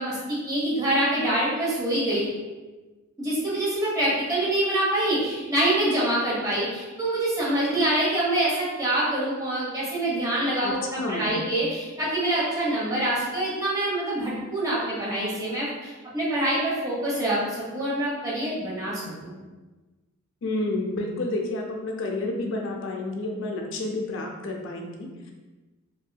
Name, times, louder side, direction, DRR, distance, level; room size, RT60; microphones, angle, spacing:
voice 1, 0.0-2.3 3.2-19.3, right 1 dB, 15° right, -8 dB, 0.9 m, -25 dB
voice 2, 10.6-11.4 20.4-25.3, left 2 dB, 60° left, 1 dB, 0.5 m, -30 dB
3.4 x 2.6 x 2.2 m, 1.2 s
head